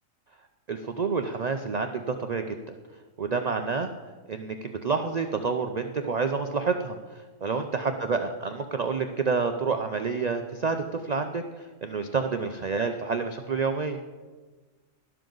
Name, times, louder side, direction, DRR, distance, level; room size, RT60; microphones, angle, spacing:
voice 1, 0.7-2.8 3.2-3.9 4.3-14.0, right 4 dB, 60° right, 6 dB, 0.4 m, -29 dB
12.0 x 12.0 x 3.9 m, 1.3 s
omnidirectional pair, 1.5 m